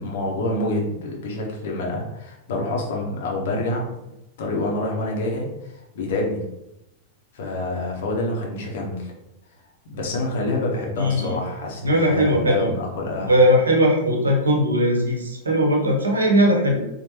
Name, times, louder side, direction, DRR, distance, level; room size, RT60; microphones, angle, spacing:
voice 1, 0.0-3.8 4.4-6.4 7.3-9.1 9.9-13.3, left 2 dB, 55° left, -1 dB, 1.0 m, -27 dB
voice 2, 11.0-11.4 11.8-12.7 13.2-16.9, equal, 75° right, 0 dB, 0.8 m, -19 dB
4.4 x 2.5 x 2.8 m, 0.90 s
figure-of-eight pair, 90°, 0 cm